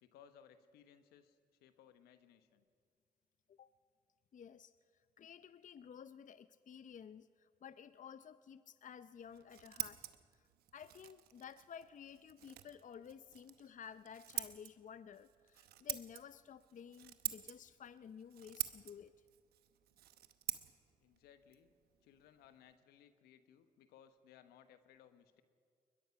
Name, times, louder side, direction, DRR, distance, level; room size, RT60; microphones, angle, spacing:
voice 1, 0.0-2.6 21.0-21.7 22.0-25.4, left 9 dB, 90° left, 10 dB, 1.1 m, -63 dB
voice 2, 4.3-4.7 5.2-10.0 10.3-10.4 10.7-19.1, left 7 dB, 55° left, 14 dB, 0.6 m, -54 dB
Scissors, 9.2-22.8, right 13 dB, 85° right, 0.9 m, -48 dB
21.0 x 21.0 x 5.8 m, 2.1 s
supercardioid pair, 45°, 16 cm